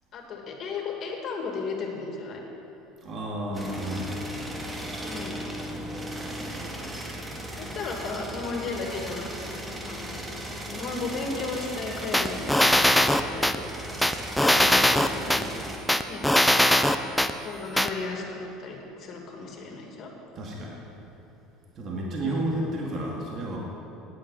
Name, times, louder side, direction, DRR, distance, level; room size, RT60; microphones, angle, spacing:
voice 1, 0.1-2.4 5.0-5.4 7.6-10.2 10.7-15.4 16.1-16.3 17.4-20.1 22.2-22.5, left 4 dB, 50° left, 1 dB, 2.4 m, -35 dB
voice 2, 3.0-4.1 20.3-20.8 21.7-23.6, right 1 dB, 45° right, -2 dB, 2.3 m, -31 dB
sound 1, 3.5-15.8, right 1 dB, 15° right, 2.0 m, -37 dB
sound 2, 12.1-13.6 14.0-15.4 15.9-17.3 17.8-17.9, left 1 dB, 5° left, 0.6 m, -20 dB
9.8 x 8.8 x 9.2 m, 2.9 s
supercardioid pair, 90°, 0 cm